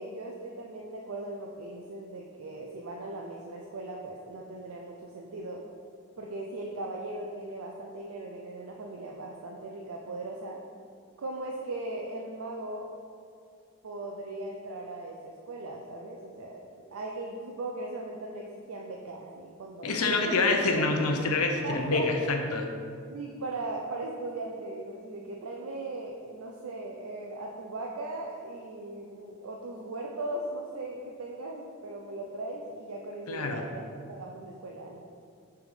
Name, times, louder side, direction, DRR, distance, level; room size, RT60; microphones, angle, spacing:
voice 1, 0.0-5.6 6.2-10.6 11.2-12.9 13.8-20.4 20.7-20.9 21.6-22.3 22.9-33.8 34.1-35.0, right 2 dB, 75° right, -1 dB, 0.5 m, -38 dB
voice 2, 19.8-22.6 33.3-33.6, left 3 dB, 85° left, 3 dB, 0.7 m, -26 dB
6.1 x 3.5 x 4.9 m, 2.2 s
head